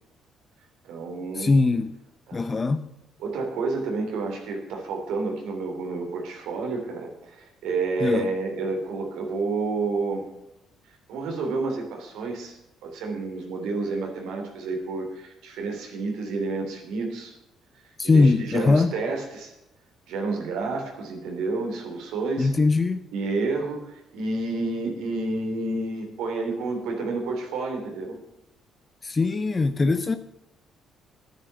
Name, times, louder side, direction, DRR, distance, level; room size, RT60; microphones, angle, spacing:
voice 1, 0.8-1.5 2.3-2.5 3.2-10.3 11.1-17.3 18.0-19.5 20.1-22.5 23.1-28.2, right 3 dB, 80° right, 3.1 m, -30 dB
voice 2, 1.3-2.0 2.3-2.9 8.0-8.3 18.0-18.9 22.4-23.0 29.0-30.2, left 3 dB, 30° left, 0.7 m, -21 dB
10.5 x 9.6 x 6.8 m
supercardioid pair, 70°, 0 cm